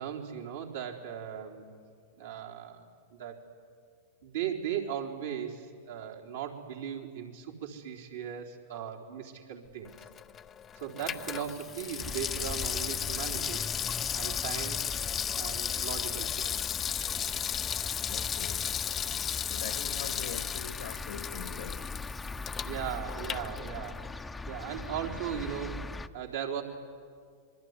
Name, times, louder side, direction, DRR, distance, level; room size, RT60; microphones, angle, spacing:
voice 1, 0.0-1.7 2.2-2.9 3.2-3.4 4.2-9.9 10.7-13.7 14.2-14.8 15.3-16.7 22.6-25.8 26.1-26.6, right 9 dB, 75° right, 0 dB, 3.9 m, -38 dB
Water tap faucet / Sink (filling or washing), 9.8-24.1 24.5-24.6, left 9 dB, 30° left, 0.7 m, -35 dB
sound 1, 12.0-26.1, left 3 dB, 10° left, 0.9 m, -41 dB
voice 2, 18.1-18.7 19.5-21.9, left 7 dB, 75° left, 9 dB, 2.0 m, -43 dB
26.0 x 22.0 x 9.7 m, 2.2 s
hypercardioid pair, 100°, 0 cm